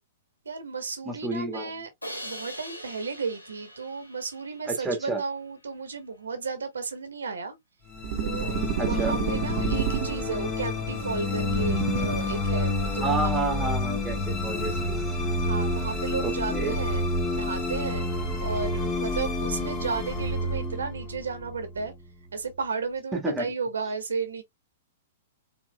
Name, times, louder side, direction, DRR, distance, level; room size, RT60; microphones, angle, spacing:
voice 1, 0.4-1.9 2.2-7.6 8.2-8.5 8.8-13.3 15.4-18.1 18.4-21.9 22.3-24.4, right 4 dB, 70° right, 1.2 m, -33 dB
voice 2, 1.0-1.7 4.7-5.2 8.8-9.2 13.0-15.0 16.2-16.8 23.1-23.5, right 3 dB, 10° right, 1.5 m, -30 dB
Crash cymbal, 2.0-5.1, equal, 90° left, 1.7 m, -42 dB
sound 1, 7.9-22.3, left 2 dB, 25° left, 1.7 m, -29 dB
sound 2, 8.0-10.5 11.4-12.4, right 10 dB, 45° right, 0.5 m, -30 dB
4.5 x 3.7 x 2.2 m
figure-of-eight pair, 105°, 0 cm